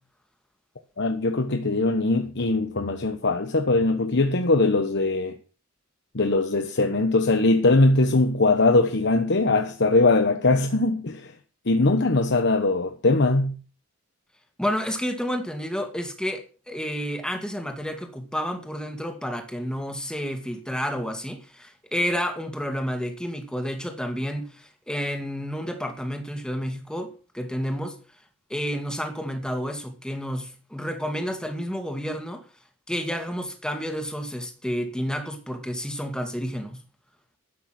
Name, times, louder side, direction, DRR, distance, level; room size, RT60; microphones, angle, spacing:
voice 1, 1.0-5.4 6.1-11.3 11.7-13.5, left 2 dB, 60° left, 1.1 m, -21 dB
voice 2, 14.6-28.0 28.5-32.4 32.9-36.8, equal, 5° left, 2.2 m, -30 dB
12.5 x 9.1 x 6.0 m
head